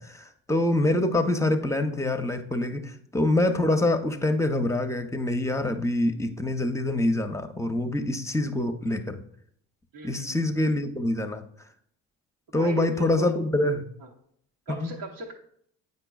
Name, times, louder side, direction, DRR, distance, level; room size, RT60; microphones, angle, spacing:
voice 1, 0.0-9.2 10.0-11.4 12.5-13.8 14.8-14.9, left 1 dB, 5° left, 8 dB, 0.6 m, -25 dB
voice 2, 9.9-10.5 12.6-13.4 14.0-14.1 14.7-15.3, right 2 dB, 80° right, -4 dB, 1.1 m, -37 dB
7.9 x 5.4 x 2.3 m, 0.67 s
supercardioid pair, 65°, 41 cm